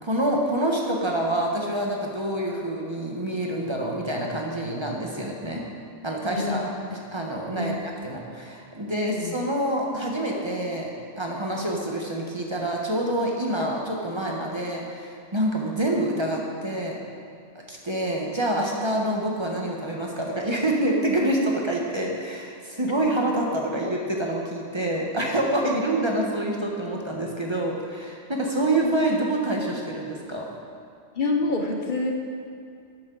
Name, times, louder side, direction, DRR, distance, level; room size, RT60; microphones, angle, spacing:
voice 1, 0.0-5.6 6.0-10.9 11.2-17.0 17.7-30.5, right 1 dB, 25° right, -1 dB, 1.1 m, -27 dB
voice 2, 6.3-6.7 7.6-7.7 9.1-9.3 28.8-28.9 31.2-32.1, left 2 dB, 50° left, 1 dB, 0.9 m, -26 dB
12.5 x 8.8 x 3.9 m, 2.4 s
omnidirectional pair, 1.1 m